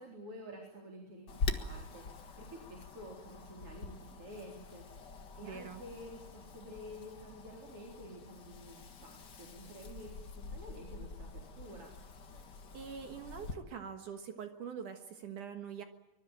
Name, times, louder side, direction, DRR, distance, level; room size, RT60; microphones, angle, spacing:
voice 1, 0.0-4.9 5.4-11.9, equal, 35° right, 0 dB, 4.5 m, -50 dB
Wind, 1.3-13.5, left 4 dB, 70° left, 1.0 m, -44 dB
voice 2, 5.4-5.8 12.7-15.8, right 7 dB, 60° right, 7 dB, 2.5 m, -44 dB
24.5 x 22.5 x 9.0 m, 1.0 s
omnidirectional pair, 4.7 m